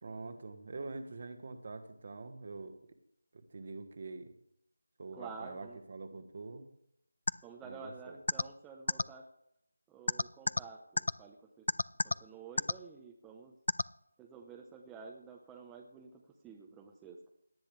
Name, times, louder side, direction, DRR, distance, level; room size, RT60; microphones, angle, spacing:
voice 1, 0.0-2.8 3.3-4.3 5.0-6.7 7.6-8.2, right 3 dB, 45° right, 7 dB, 1.4 m, -45 dB
voice 2, 5.2-5.8 7.4-9.3 9.9-11.7 12.0-13.6 14.2-17.3, right 5 dB, 10° right, 1 dB, 0.8 m, -50 dB
sound 1, 7.3-7.4 8.3-8.4 8.9-9.0 10.1-10.6 11.0-11.1 11.7-12.1 12.6-12.7 13.7-13.8, left 2 dB, 65° left, 0.3 m, -28 dB
17.5 x 10.5 x 3.4 m, 0.76 s
figure-of-eight pair, 165°, 0 cm